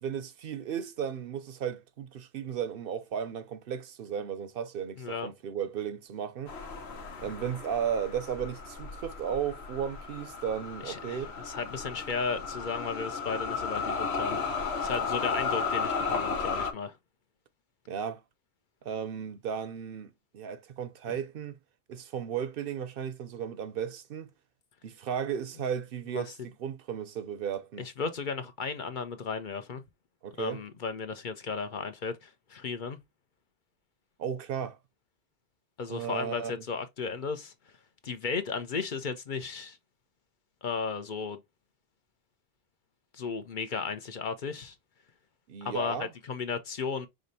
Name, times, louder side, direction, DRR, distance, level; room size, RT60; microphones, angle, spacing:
voice 1, 0.0-6.5 7.2-11.3 17.9-18.2 18.8-21.6 21.9-24.3 24.8-27.9 30.2-30.6 34.2-34.8 35.9-36.6 45.5-46.1, right 8 dB, 65° right, 0.7 m, -35 dB
voice 2, 5.0-5.3 10.8-17.0 21.1-21.2 26.1-26.2 27.8-29.8 30.4-33.0 35.8-37.5 38.0-39.8 40.6-41.4 43.1-44.7 45.6-47.1, left 5 dB, 55° left, 0.8 m, -35 dB
sound 1, 6.5-16.7, left 5 dB, 90° left, 1.2 m, -34 dB
5.0 x 3.2 x 2.6 m
omnidirectional pair, 1.1 m